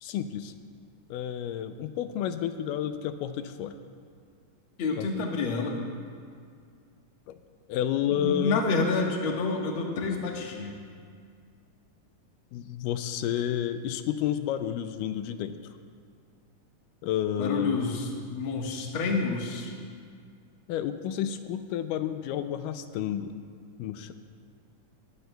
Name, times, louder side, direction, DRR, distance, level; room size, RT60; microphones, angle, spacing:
voice 1, 0.0-0.5 1.1-3.8 5.0-5.1 7.3-7.4 7.7-8.6 12.5-15.6 17.0-17.8 20.7-23.3 23.8-24.1, left 10 dB, 85° left, 9 dB, 2.1 m, -30 dB
voice 2, 4.8-5.8 8.2-10.8 17.4-19.7, left 4 dB, 50° left, 0 dB, 1.7 m, -28 dB
sound 1, 13.4-14.9, left 4 dB, 65° right, 2.7 m, -54 dB
19.5 x 17.0 x 2.3 m, 2.2 s
omnidirectional pair, 3.8 m